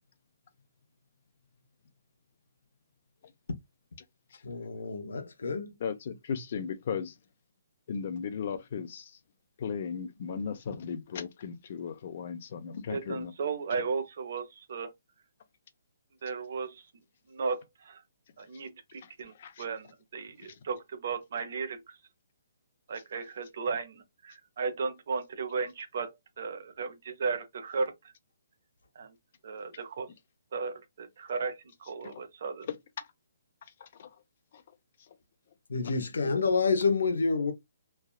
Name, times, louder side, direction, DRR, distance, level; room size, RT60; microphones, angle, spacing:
voice 1, 4.4-5.7 35.7-37.5, left 4 dB, 85° left, 0.8 m, -28 dB
voice 2, 5.8-7.1 7.9-9.1 9.6-13.3 19.4-19.6 32.0-32.2 33.8-34.1, left 6 dB, 35° left, 0.5 m, -36 dB
voice 3, 12.9-14.9 16.2-16.8 17.3-18.0 18.4-19.3 19.6-22.0 22.9-27.9 29.0-29.1 29.4-30.1 30.5-32.7, right 5 dB, 45° right, 0.6 m, -35 dB
3.3 x 2.3 x 2.2 m
hypercardioid pair, 180°, 0 cm